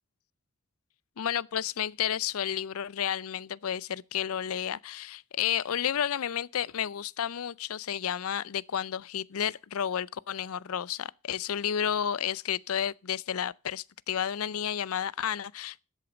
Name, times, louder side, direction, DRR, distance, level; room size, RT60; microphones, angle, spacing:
voice 1, 1.2-15.8, left 9 dB, 80° left, 0.5 m, -31 dB
13.0 x 8.3 x 5.0 m
head